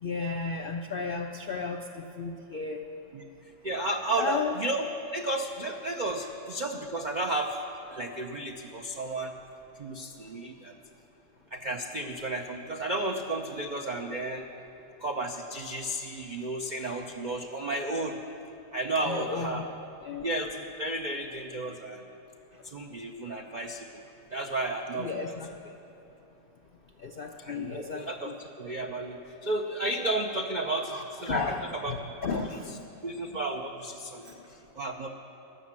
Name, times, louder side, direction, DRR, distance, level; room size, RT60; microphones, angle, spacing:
voice 1, 0.0-2.9 4.2-4.5 19.0-19.7 20.0-20.3 22.5-22.6 23.3-23.4 25.0-25.8 27.0-28.3 30.9-32.9 33.2-33.4 34.2-34.5, left 4 dB, 75° left, 4 dB, 0.5 m, -34 dB
voice 2, 3.6-4.9 5.1-7.6 7.9-9.3 9.8-10.7 11.5-14.5 15.0-18.2 18.7-19.7 20.2-22.0 22.6-24.0 24.3-25.1 27.4-31.9 32.3-32.5 33.0-35.1, right 2 dB, 70° right, 3 dB, 0.4 m, -33 dB
14.0 x 11.0 x 7.4 m, 2.9 s
omnidirectional pair, 1.7 m